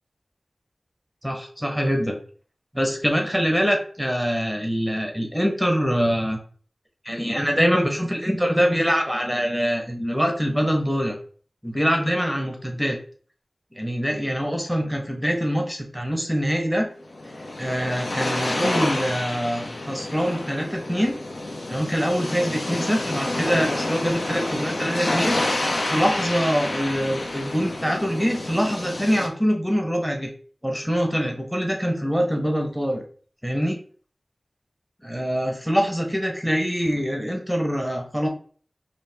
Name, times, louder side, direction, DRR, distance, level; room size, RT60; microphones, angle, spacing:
voice 1, 1.2-2.2 2.7-6.4 7.0-11.2 11.6-13.0 13.7-16.9 17.6-21.2 21.7-30.3 30.6-33.0 33.4-33.8 35.0-38.3, equal, ahead, 2 dB, 1.0 m, -24 dB
sound 1, 17.0-29.3, left 1 dB, 70° left, 0.7 m, -28 dB
4.4 x 2.8 x 3.4 m, 0.44 s
wide cardioid pair, 55°, 0 cm